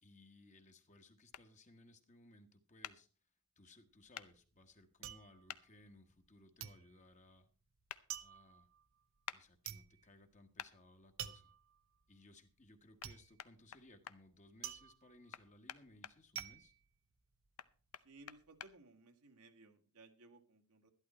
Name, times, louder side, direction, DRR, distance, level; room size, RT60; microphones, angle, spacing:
voice 1, 0.0-3.1 3.6-7.5 8.2-8.7 9.3-11.5 12.1-16.7, left 2 dB, 35° left, 6 dB, 1.4 m, -63 dB
sound 1, 1.3-1.5 2.8-3.0 4.1-4.3 5.5-5.6 7.9-8.0 9.3-9.4 10.6-10.7 13.0-13.1 13.4-14.2 15.3-16.5 17.6-18.7, left 9 dB, 85° left, 0.7 m, -48 dB
sound 2, 3.9-6.3 6.6-17.7 18.0-18.6, right 10 dB, 65° right, 0.9 m, -50 dB
voice 2, 18.0-20.9, right 2 dB, 85° right, 5 dB, 1.8 m, -61 dB
12.5 x 11.5 x 4.3 m, 0.38 s
head